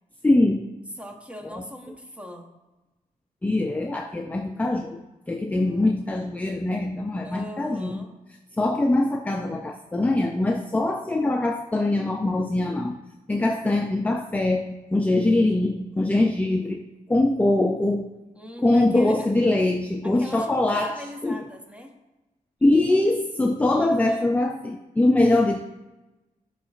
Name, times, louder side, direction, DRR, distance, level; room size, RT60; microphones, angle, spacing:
voice 1, 0.2-0.7 1.4-1.6 3.4-5.0 5.3-8.0 8.6-13.0 13.3-16.8 17.1-18.1 18.6-21.0 21.2-21.4 22.6-25.6, left 2 dB, 10° left, 4 dB, 0.4 m, -22 dB
voice 2, 1.0-2.5 5.5-6.0 7.2-8.3 18.4-19.3 20.0-21.9 23.6-24.3, equal, 10° right, 3 dB, 0.8 m, -41 dB
11.0 x 3.7 x 2.4 m, 1.1 s
wide cardioid pair, 105°, 15 cm